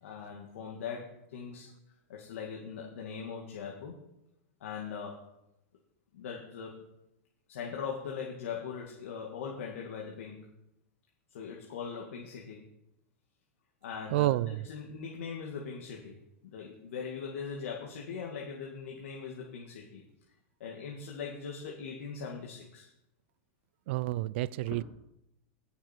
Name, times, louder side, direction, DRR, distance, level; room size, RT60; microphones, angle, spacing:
voice 1, 0.0-1.7 2.1-4.0 4.6-5.2 6.1-6.8 7.5-10.5 11.3-12.7 13.8-20.0 20.6-22.9 24.7-24.8, left 6 dB, 80° left, 2.1 m, -40 dB
voice 2, 14.1-14.6 23.9-24.8, right 17 dB, 60° right, 0.4 m, -29 dB
16.0 x 7.0 x 4.5 m
supercardioid pair, 145°, 7 cm